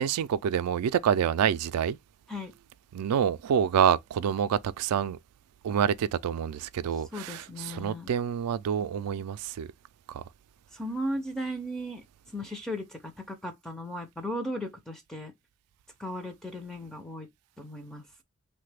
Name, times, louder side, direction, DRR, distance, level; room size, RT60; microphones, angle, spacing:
voice 1, 0.0-2.0 2.9-5.2 5.6-9.7 10.1-10.2, right 8 dB, 90° right, 0.3 m, -27 dB
voice 2, 7.1-8.1 10.7-12.0 12.3-15.3 16.0-17.3 17.6-18.0, equal, ahead, 0.4 m, -36 dB
3.2 x 2.1 x 3.2 m
head